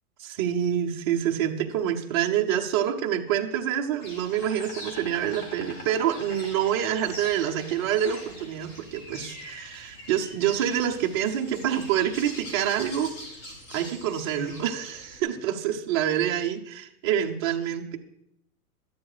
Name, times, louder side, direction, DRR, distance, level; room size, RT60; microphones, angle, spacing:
voice 1, 0.2-13.1 13.7-18.0, right 10 dB, 20° right, 2 dB, 0.5 m, -27 dB
Insect, 4.0-15.2, left 1 dB, 30° left, 2.5 m, -43 dB
12.5 x 10.0 x 4.8 m, 0.77 s
supercardioid pair, 165°, 43 cm